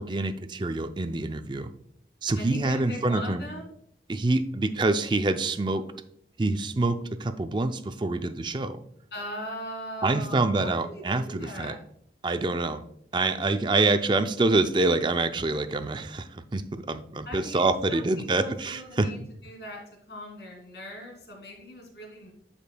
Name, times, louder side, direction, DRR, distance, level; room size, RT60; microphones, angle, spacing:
voice 1, 0.0-1.7 2.2-3.5 4.1-5.8 6.4-8.8 10.0-11.8 12.2-12.8 13.1-19.1, right 2 dB, 25° right, 9 dB, 0.4 m, -26 dB
voice 2, 2.3-3.7 9.1-11.8 17.2-22.3, left 1 dB, 75° left, 0 dB, 2.9 m, -40 dB
12.0 x 5.2 x 2.2 m, 0.70 s
head